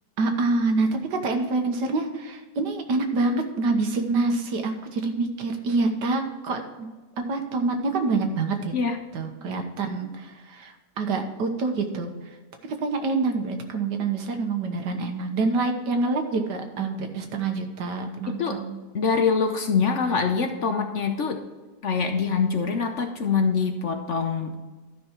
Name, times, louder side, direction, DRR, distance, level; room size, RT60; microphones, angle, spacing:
voice 1, 0.2-6.9 7.2-8.7 9.1-12.4 12.6-18.8, right 3 dB, 85° right, 5 dB, 1.8 m, -26 dB
voice 2, 18.3-18.6 18.9-21.4 21.8-24.6, left 5 dB, 55° left, 5 dB, 1.0 m, -24 dB
12.5 x 5.7 x 4.4 m, 1.3 s
omnidirectional pair, 1.8 m